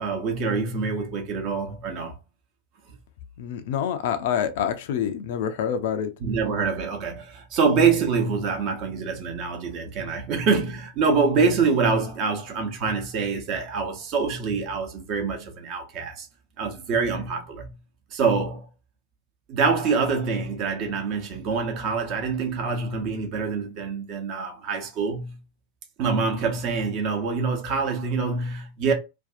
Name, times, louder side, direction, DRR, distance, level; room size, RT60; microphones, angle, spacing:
voice 1, 0.0-2.1 6.2-16.3 16.6-17.7 18.1-18.7 19.5-25.4 26.0-28.9, right 5 dB, 40° right, 0.8 m, -25 dB
voice 2, 3.4-6.1, left 8 dB, 50° left, 0.4 m, -26 dB
2.6 x 2.3 x 2.4 m
figure-of-eight pair, 90°, 0 cm